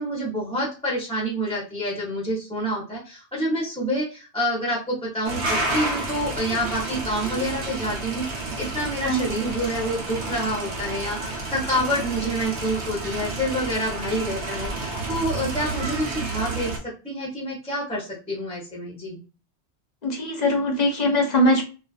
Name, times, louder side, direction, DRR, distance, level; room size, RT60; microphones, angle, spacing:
voice 1, 0.0-19.2, equal, 5° left, -5 dB, 0.5 m, -28 dB
sound 1, 5.2-16.8, right 2 dB, 80° right, 1.0 m, -30 dB
voice 2, 20.0-21.6, left 1 dB, 50° left, 1 dB, 0.6 m, -21 dB
2.4 x 2.3 x 2.3 m, 0.34 s
omnidirectional pair, 1.1 m